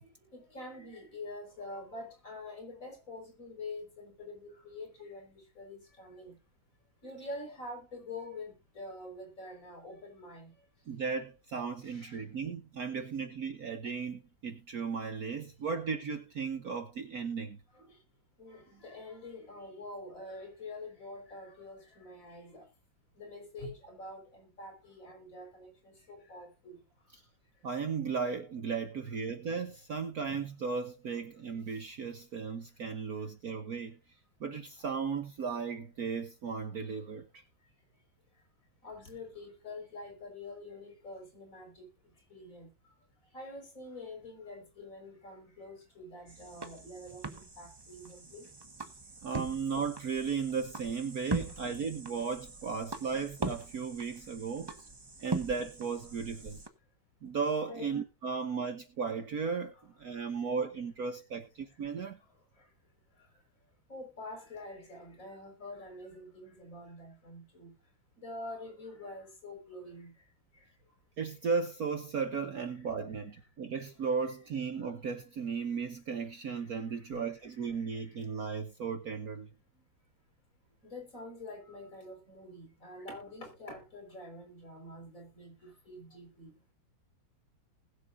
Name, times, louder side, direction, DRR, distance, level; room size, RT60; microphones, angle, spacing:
voice 1, 0.3-6.4 7.0-10.5 11.8-12.3 17.7-18.0 18.4-22.7 23.2-26.8 38.8-41.9 42.3-42.7 43.3-47.2 47.6-48.5 55.3-55.4 57.7-58.0 63.9-67.7 68.2-70.1 74.3-74.4 77.1-78.1 80.8-86.5, left 2 dB, 40° left, 5.5 m, -46 dB
voice 2, 10.9-17.6 27.6-33.9 34.4-37.2 49.2-54.7 55.2-56.6 57.2-59.7 60.0-62.2 71.2-79.5, right 5 dB, 55° right, 1.5 m, -35 dB
sound 1, 46.3-56.7, right 3 dB, 20° right, 0.6 m, -41 dB
20.5 x 7.5 x 2.6 m
omnidirectional pair, 2.1 m